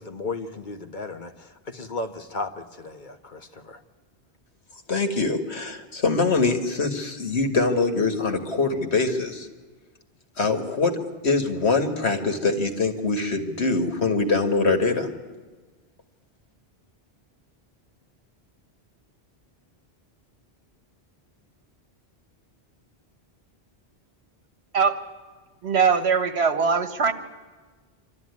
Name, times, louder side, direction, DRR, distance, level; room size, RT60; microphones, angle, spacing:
voice 1, 0.0-3.8, left 3 dB, 45° left, 6 dB, 1.4 m, -35 dB
voice 2, 4.9-9.5 10.4-11.0 11.2-15.1, left 3 dB, 85° left, 6 dB, 2.1 m, -23 dB
voice 3, 25.6-27.1, right 5 dB, 80° right, 9 dB, 1.5 m, -21 dB
26.0 x 12.5 x 9.6 m, 1.3 s
omnidirectional pair, 1.1 m